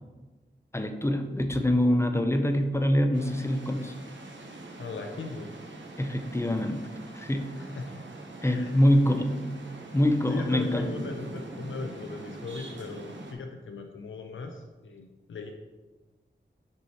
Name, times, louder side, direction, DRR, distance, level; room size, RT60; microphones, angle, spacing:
voice 1, 0.7-3.9 6.0-6.8 7.1-7.5 8.4-9.3 9.9-10.9, left 1 dB, 15° left, 6 dB, 0.6 m, -25 dB
sound 1, 3.1-13.3, right 2 dB, 70° right, 0.9 m, -43 dB
voice 2, 4.8-5.5 7.6-8.0 8.4-8.8 10.3-15.5, left 3 dB, 80° left, 3 dB, 0.6 m, -39 dB
5.5 x 4.7 x 4.4 m, 1.2 s
wide cardioid pair, 75°, 20 cm